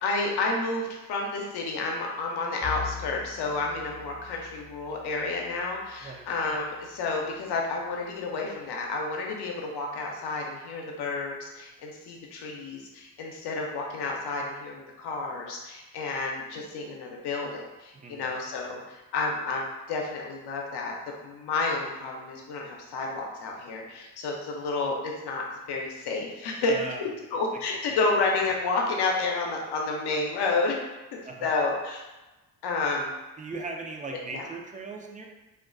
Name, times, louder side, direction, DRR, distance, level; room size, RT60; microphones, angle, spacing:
voice 1, 0.0-20.9 21.2-30.7 31.1-32.0 32.6-33.1 34.3-34.5, left 3 dB, 75° left, 0 dB, 0.6 m, -30 dB
Bowed string instrument, 2.6-7.2, left 7 dB, 30° left, 0.6 m, -43 dB
voice 2, 17.9-18.3 26.7-27.0 27.9-28.0 31.2-31.6 33.4-35.3, right 3 dB, 20° right, 1 dB, 0.4 m, -38 dB
2.3 x 2.2 x 2.4 m, 1.1 s
supercardioid pair, 55°, 41 cm